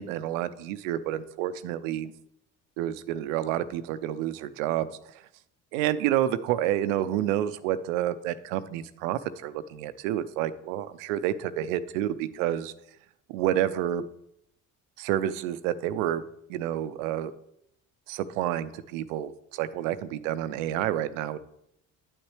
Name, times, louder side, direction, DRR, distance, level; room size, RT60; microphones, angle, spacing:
voice 1, 0.0-2.1 2.8-4.9 5.7-12.7 13.3-14.0 15.0-16.2 16.5-17.3 18.1-21.4, right 12 dB, 90° right, 14 dB, 0.5 m, -29 dB
8.8 x 8.7 x 3.2 m, 0.77 s
hypercardioid pair, 60°, 38 cm